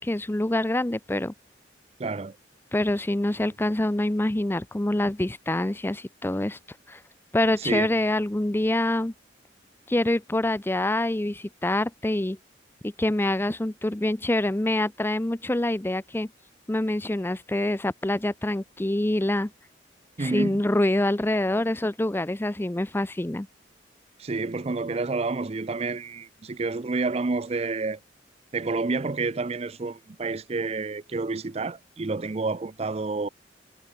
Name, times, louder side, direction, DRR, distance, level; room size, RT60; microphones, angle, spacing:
voice 1, 0.0-1.3 2.7-6.6 6.9-7.0 7.3-9.1 9.9-12.4 12.8-16.3 16.7-19.5 20.2-23.5, left 1 dB, 10° left, 0.5 m, -26 dB
voice 2, 2.0-2.4 7.6-7.9 20.2-20.6 24.2-28.0 28.5-33.3, right 3 dB, 35° right, 0.5 m, -29 dB
head